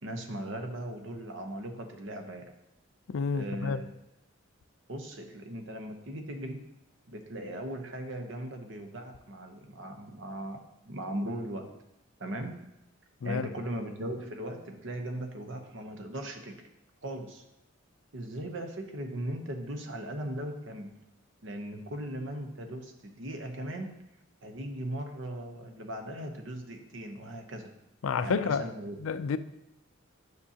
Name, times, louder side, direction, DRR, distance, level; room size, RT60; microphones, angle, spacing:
voice 1, 0.0-2.5 3.3-3.9 4.9-6.6 7.1-11.7 12.2-12.6 13.2-16.7 17.0-17.4 18.1-21.0 21.4-24.0 24.4-27.7 28.2-29.0, right 1 dB, 65° right, 0.9 m, -38 dB
voice 2, 3.1-3.8 13.2-13.5 28.0-28.7 29.0-29.4, left 5 dB, 75° left, 0.4 m, -29 dB
9.6 x 6.1 x 2.8 m
head